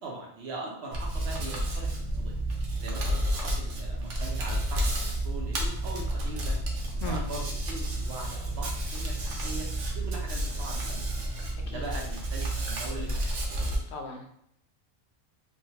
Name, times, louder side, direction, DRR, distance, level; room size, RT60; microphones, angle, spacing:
voice 1, 0.0-2.4 2.8-6.6 7.0-9.7 9.9-11.2 11.6-13.3, right 2 dB, 65° right, -1 dB, 1.0 m, -41 dB
Hands, 0.9-13.8, right 1 dB, 85° right, 1.1 m, -31 dB
voice 2, 13.9-14.3, left 2 dB, 70° left, 3 dB, 0.8 m, -37 dB
3.5 x 2.3 x 2.8 m, 0.71 s
omnidirectional pair, 1.2 m